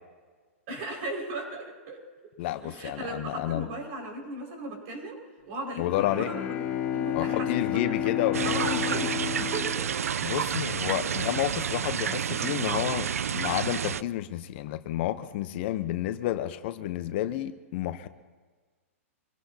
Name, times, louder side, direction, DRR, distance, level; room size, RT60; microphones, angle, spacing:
voice 1, 0.7-2.0 2.6-5.2 5.5-6.6 6.9-9.9, right 1 dB, 45° right, 0 dB, 5.5 m, -37 dB
voice 2, 2.4-3.7 5.8-6.3 7.1-8.4 10.2-18.1, left 13 dB, 50° left, 11 dB, 0.9 m, -30 dB
Bowed string instrument, 5.8-10.7, left 10 dB, 30° left, 2.1 m, -31 dB
sound 1, 8.3-14.0, right 8 dB, 80° right, 0.4 m, -30 dB
25.0 x 17.0 x 2.9 m, 1.4 s
hypercardioid pair, 120°, 8 cm